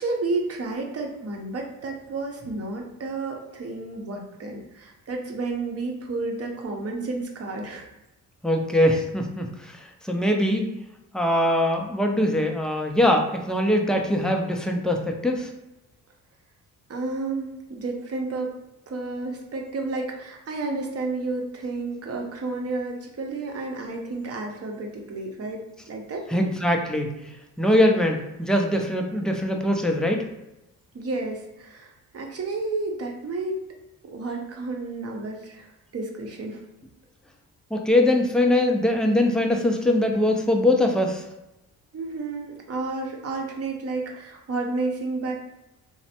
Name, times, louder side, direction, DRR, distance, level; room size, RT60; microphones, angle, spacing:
voice 1, 0.0-7.9 16.9-18.5 18.9-25.6 25.9-26.2 30.9-33.6 34.0-36.6 41.9-45.3, right 3 dB, 40° right, 1 dB, 0.7 m, -31 dB
voice 2, 8.4-10.7 11.1-15.5 26.3-27.1 27.6-30.2 37.7-41.2, left 1 dB, ahead, 2 dB, 0.4 m, -22 dB
3.2 x 2.1 x 2.8 m, 0.93 s
cardioid pair, 75°, 36 cm